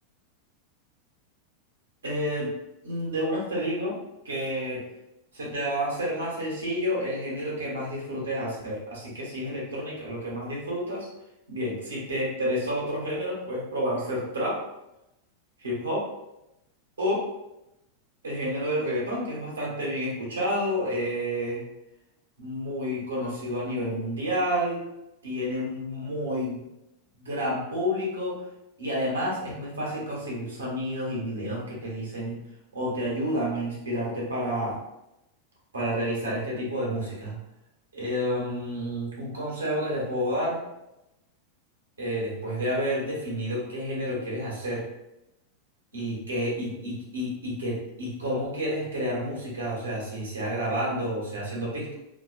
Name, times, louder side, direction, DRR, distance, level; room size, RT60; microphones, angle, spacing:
voice 1, 2.0-2.5 2.8-4.0 4.2-4.8 5.3-11.1 11.5-14.6 15.6-16.1 17.0-17.2 18.2-21.6 22.4-24.9 25.2-26.6 27.2-28.4 28.8-32.3 32.7-34.8 35.7-37.4 37.9-40.6 42.0-44.8 45.9-51.9, equal, 85° right, -4 dB, 0.9 m, -30 dB
2.4 x 2.1 x 2.4 m, 0.90 s
hypercardioid pair, 95°, 0 cm